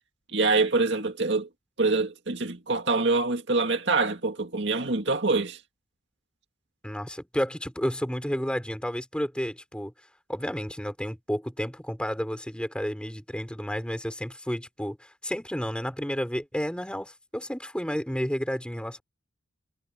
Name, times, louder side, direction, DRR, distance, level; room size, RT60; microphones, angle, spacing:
voice 1, 0.3-1.5 1.8-5.6, right 3 dB, 60° right, 2.2 m, -25 dB
voice 2, 6.8-9.9 10.3-19.0, equal, 5° left, 4.9 m, -31 dB
head